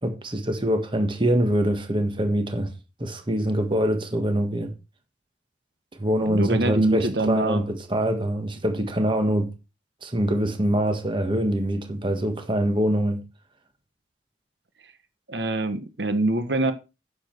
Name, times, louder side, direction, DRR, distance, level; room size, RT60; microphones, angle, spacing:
voice 1, 0.0-2.7 3.0-4.7 6.0-9.5 10.0-13.2, equal, 30° right, 1.5 m, -24 dB
voice 2, 6.2-7.6 15.3-16.7, right 2 dB, 80° right, 1.2 m, -24 dB
9.9 x 7.3 x 4.5 m
head